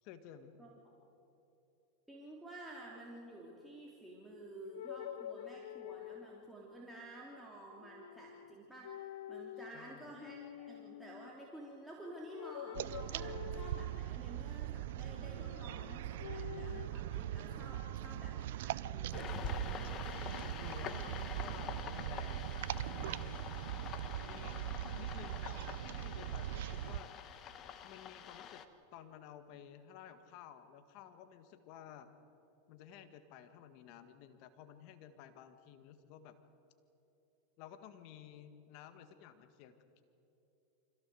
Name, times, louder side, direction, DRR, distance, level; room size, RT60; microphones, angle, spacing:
voice 1, 0.0-0.5 9.7-10.2 20.4-23.5 24.2-27.1 27.8-28.6 28.9-32.1 32.7-36.3 37.6-40.0, left 9 dB, 55° left, 10 dB, 1.7 m, -54 dB
voice 2, 0.6-0.9 2.1-19.9 22.2-22.4, right 1 dB, 5° right, -4 dB, 3.2 m, -51 dB
sound 1, 4.7-6.5 7.8-8.5 8.8-9.8 10.1-11.3 12.3-14.1 15.2-16.9, left 12 dB, 80° left, 0.6 m, -48 dB
sound 2, 12.7-27.0, right 12 dB, 75° right, 0.6 m, -41 dB
sound 3, 19.1-28.7, left 8 dB, 40° left, 1.5 m, -46 dB
25.5 x 16.5 x 7.8 m, 3.0 s
hypercardioid pair, 110°, 0 cm